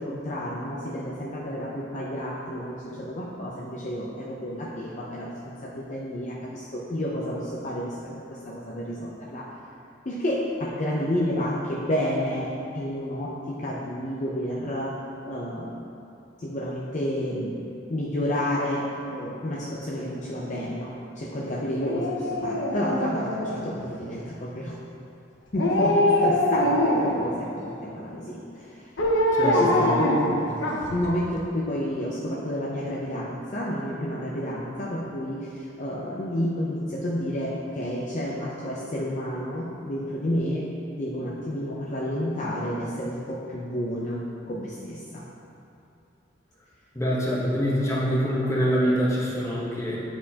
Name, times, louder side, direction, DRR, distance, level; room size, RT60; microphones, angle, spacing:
voice 1, 0.0-5.3 5.6-8.0 8.3-9.5 10.1-15.0 15.2-15.8 16.4-17.6 17.9-24.8 25.5-28.9 29.4-30.5 30.9-40.7 41.0-45.2, equal, 40° left, -5 dB, 0.6 m, -30 dB
Dog, 21.8-23.9 25.5-27.2 29.0-31.1 31.4-31.5, left 1 dB, 75° left, 0.8 m, -23 dB
voice 2, 29.4-30.2 46.9-50.0, equal, 15° left, -6 dB, 1.0 m, -25 dB
9.5 x 4.4 x 2.8 m, 2.7 s
head